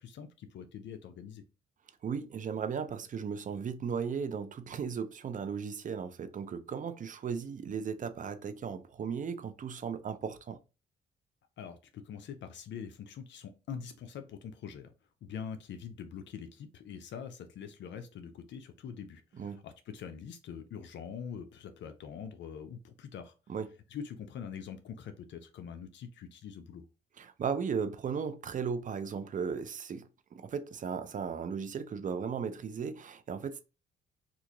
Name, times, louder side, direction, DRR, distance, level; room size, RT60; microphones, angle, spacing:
voice 1, 0.0-1.4 11.6-14.9 15.2-23.3 23.9-26.8, left 7 dB, 65° left, 0.5 m, -44 dB
voice 2, 2.0-10.6 19.4-19.6 23.5-23.7 27.2-33.6, right 6 dB, 40° right, 0.5 m, -36 dB
2.9 x 2.5 x 3.7 m
cardioid pair, 90°, 20 cm